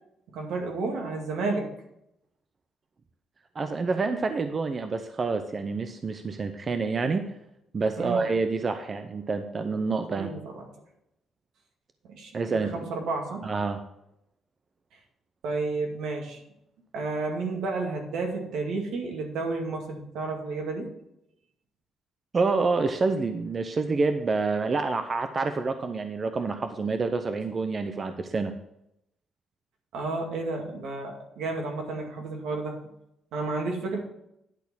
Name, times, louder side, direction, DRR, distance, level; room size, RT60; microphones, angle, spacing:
voice 1, 0.3-1.7 8.0-8.2 10.2-10.6 12.1-13.4 15.4-16.4 16.9-20.9 29.9-32.8 33.3-34.0, right 3 dB, 80° right, 1 dB, 2.1 m, -31 dB
voice 2, 3.5-7.2 7.7-10.3 12.3-12.9 13.4-13.8 22.3-28.5, right 4 dB, 40° right, 8 dB, 0.7 m, -27 dB
10.5 x 4.2 x 7.0 m, 0.81 s
cardioid pair, 90°, 0 cm